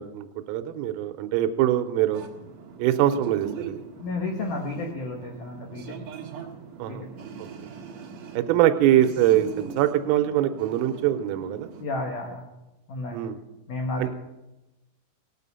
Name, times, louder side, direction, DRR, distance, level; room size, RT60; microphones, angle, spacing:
voice 1, 0.0-2.2 2.8-3.8 6.8-7.0 7.4-7.5 8.3-11.7 13.1-13.4 14.0-14.1, right 12 dB, 90° right, 9 dB, 3.3 m, -23 dB
sound 1, 2.1-11.8, right 7 dB, 65° right, 2.0 m, -41 dB
voice 2, 4.0-6.0 6.9-7.2 11.8-12.4 12.9-13.2 13.7-14.1, left 2 dB, 85° left, 2 dB, 1.8 m, -32 dB
18.5 x 9.1 x 5.5 m, 0.99 s
omnidirectional pair, 5.9 m